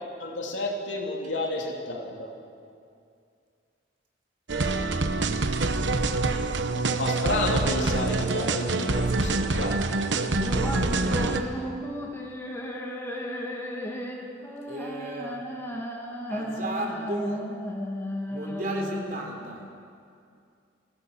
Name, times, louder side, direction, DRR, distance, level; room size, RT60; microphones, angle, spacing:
voice 1, 0.0-2.3 7.0-10.4, left 2 dB, 80° left, 0 dB, 2.8 m, -31 dB
sound 1, 4.5-11.4, right 3 dB, 70° right, 1.0 m, -26 dB
sound 2, 10.4-19.4, equal, 15° left, 2.1 m, -34 dB
voice 2, 10.8-11.5 14.7-15.5 16.3-17.4 18.3-19.6, right 1 dB, 50° right, 0 dB, 3.7 m, -34 dB
23.5 x 16.0 x 7.2 m, 2.4 s
head